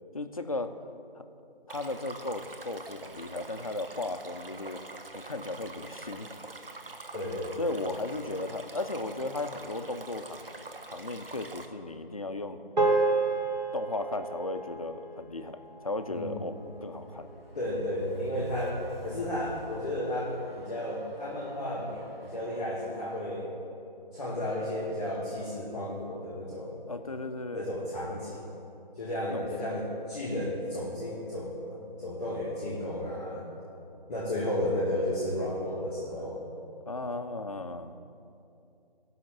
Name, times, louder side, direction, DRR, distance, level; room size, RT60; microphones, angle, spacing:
voice 1, 0.1-0.7 1.1-1.2 1.7-4.8 5.1-6.4 7.6-10.4 10.9-12.6 13.7-17.3 26.9-27.7 29.3-29.5 36.9-37.9, left 2 dB, 40° left, 8 dB, 0.5 m, -35 dB
Stream, 1.7-11.7, right 3 dB, 70° right, 1.2 m, -45 dB
voice 2, 7.1-7.8 16.1-16.4 17.5-23.5 24.1-26.8 27.5-28.4 28.9-33.5 34.1-36.4, left 1 dB, 5° left, -14 dB, 0.9 m, -33 dB
sound 1, 12.8-17.3, right 3 dB, 50° right, 1.5 m, -31 dB
Train, 14.8-23.2, right 1 dB, 85° right, 2.0 m, -48 dB
16.0 x 5.8 x 7.3 m, 2.6 s
figure-of-eight pair, 165°, 29 cm